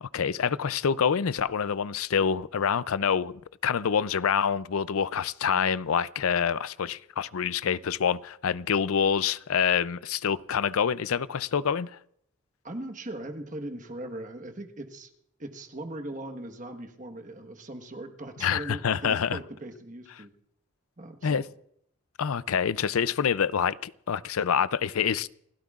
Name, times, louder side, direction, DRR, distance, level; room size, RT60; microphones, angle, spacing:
voice 1, 0.0-11.9 18.4-19.4 21.2-21.4 22.2-25.3, left 7 dB, 85° left, 0.5 m, -26 dB
voice 2, 12.6-15.1 15.4-20.3 21.0-21.4, right 1 dB, 35° right, 1.3 m, -39 dB
28.5 x 16.0 x 2.5 m
head